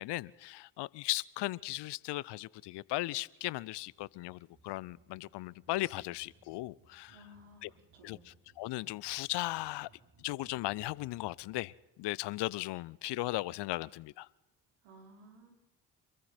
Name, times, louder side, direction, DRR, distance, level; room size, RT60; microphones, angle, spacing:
voice 1, 0.0-7.2 7.6-7.7 8.0-8.2 8.6-9.9 10.2-11.7 12.0-14.3, left 18 dB, 55° left, 24 dB, 0.7 m, -37 dB
sound 1, 3.3-11.7, right 3 dB, 40° right, 6.9 m, -65 dB
voice 2, 7.1-8.3 14.8-15.5, equal, 65° right, 1 dB, 5.7 m, -57 dB
27.0 x 22.5 x 4.4 m, 0.99 s
figure-of-eight pair, 40°, 50 cm